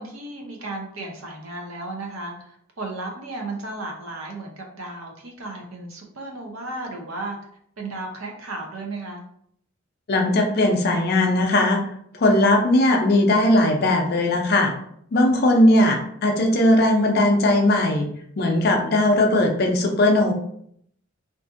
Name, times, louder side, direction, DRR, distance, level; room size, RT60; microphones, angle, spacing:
voice 1, 0.0-7.4 7.8-9.2, right 2 dB, 90° right, 2 dB, 0.6 m, -34 dB
voice 2, 10.1-11.8 12.2-14.7 15.1-18.1 18.4-20.3, left 1 dB, 50° left, 3 dB, 0.4 m, -18 dB
2.5 x 2.5 x 2.4 m, 0.68 s
head